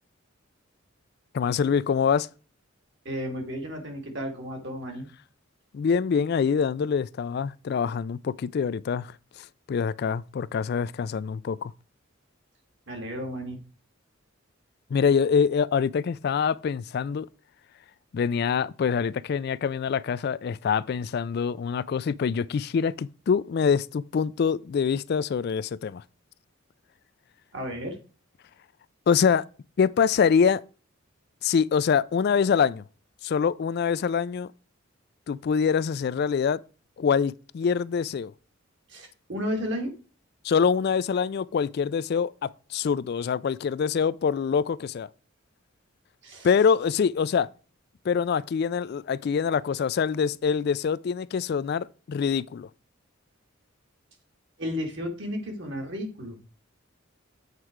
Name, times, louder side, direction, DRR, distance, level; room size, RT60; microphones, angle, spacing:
voice 1, 1.3-2.3 5.7-9.1 9.7-11.7 14.9-17.3 18.1-26.0 29.1-29.4 29.8-30.6 31.4-32.8 33.2-34.5 35.3-36.6 37.0-38.3 40.4-45.1 46.4-47.5 48.1-52.7, left 6 dB, 50° left, 0.3 m, -25 dB
voice 2, 3.0-5.1 12.9-13.6 27.5-28.0 38.9-39.9 46.2-46.5 54.6-56.4, equal, 60° right, 2.2 m, -33 dB
8.2 x 4.8 x 4.4 m
head